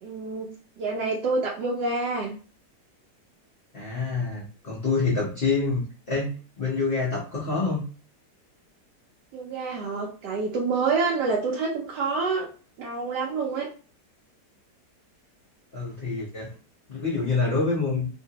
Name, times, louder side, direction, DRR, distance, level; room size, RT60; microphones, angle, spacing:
voice 1, 0.0-2.4 9.3-12.5 12.8-13.7, right 4 dB, 80° right, -1 dB, 1.2 m, -27 dB
voice 2, 3.7-7.8 15.7-16.5 16.9-18.1, left 4 dB, 45° left, -4 dB, 0.7 m, -27 dB
2.8 x 2.5 x 2.8 m, 0.38 s
omnidirectional pair, 1.8 m